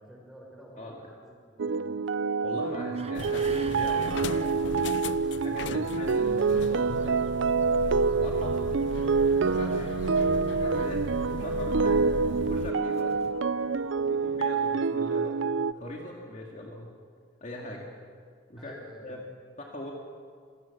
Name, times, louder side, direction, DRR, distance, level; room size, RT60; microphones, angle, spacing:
voice 1, 0.0-2.0 5.2-5.6 9.6-9.9 18.6-19.1, equal, ahead, -3 dB, 6.5 m, -51 dB
sound 1, 1.6-15.7, right 4 dB, 85° right, 0.5 m, -27 dB
voice 2, 2.4-4.5 5.4-7.2 8.1-8.7 9.5-9.9 10.6-12.0 12.4-13.1 14.0-16.9 17.4-17.9 18.5-18.8 19.0-19.2 19.6-19.9, left 1 dB, 40° left, -1 dB, 2.3 m, -40 dB
sound 2, 2.5-14.8, right 4 dB, 35° right, 1.0 m, -51 dB
sound 3, 3.1-12.7, left 4 dB, 70° left, 0.6 m, -37 dB
26.0 x 17.5 x 7.3 m, 2.1 s
head